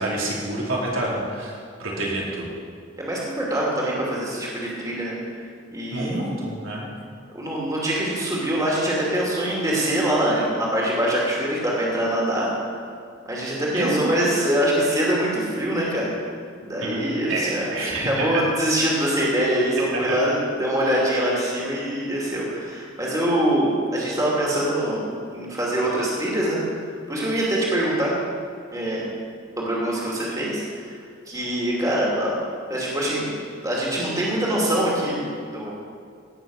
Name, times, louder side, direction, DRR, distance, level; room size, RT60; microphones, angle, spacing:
voice 1, 0.0-1.5 1.8-2.5 5.9-6.9 13.7-14.1 16.8-18.2 19.8-20.2, right 1 dB, 85° right, -4 dB, 3.4 m, -28 dB
voice 2, 3.0-5.2 5.7-6.2 7.3-12.5 13.3-16.1 16.6-25.0 25.3-26.6 27.1-28.1 28.7-29.1 29.6-30.9 31.3-32.3 32.7-33.4 33.6-35.7, right 1 dB, 15° right, -5 dB, 2.6 m, -24 dB
17.0 x 6.8 x 6.3 m, 2.2 s
head